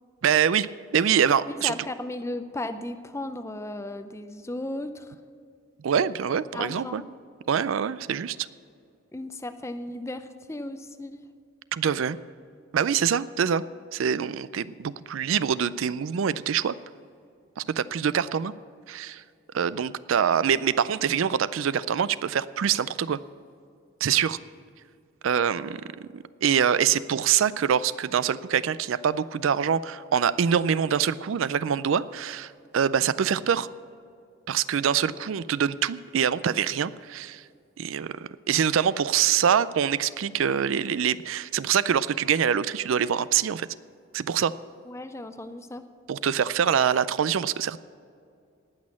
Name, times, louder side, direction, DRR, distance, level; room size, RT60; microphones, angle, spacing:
voice 1, 0.2-0.7 0.9-1.7 5.8-7.0 7.5-8.4 11.7-12.2 12.7-13.6 13.9-16.7 17.6-18.5 18.9-19.2 19.5-23.2 24.0-24.4 25.2-33.7 34.5-37.4 37.8-43.7 44.1-44.5 46.1-47.8, right 8 dB, 80° right, 17 dB, 0.4 m, -25 dB
voice 2, 1.5-5.1 6.5-7.1 9.1-11.2 44.8-45.8, left 1 dB, 15° left, 10 dB, 0.6 m, -35 dB
18.5 x 6.3 x 7.4 m, 2.3 s
head